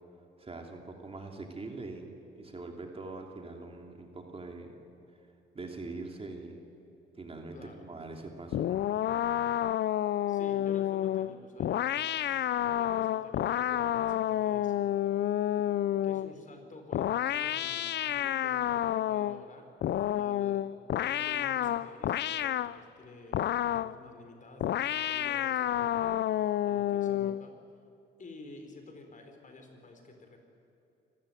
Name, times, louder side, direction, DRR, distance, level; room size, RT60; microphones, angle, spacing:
voice 1, 0.4-4.8 5.5-6.6 7.2-8.8, right 3 dB, 30° right, 3 dB, 2.9 m, -43 dB
voice 2, 7.5-7.9 10.3-12.5 12.8-15.2 16.0-20.7 21.0-27.5 28.2-30.4, left 3 dB, 40° left, 4 dB, 4.4 m, -51 dB
sound 1, 8.5-16.3 16.9-19.4 19.8-22.8 23.3-24.0 24.6-27.4, left 12 dB, 60° left, 0.5 m, -30 dB
26.0 x 14.5 x 9.3 m, 2.8 s
cardioid pair, 90°, 20 cm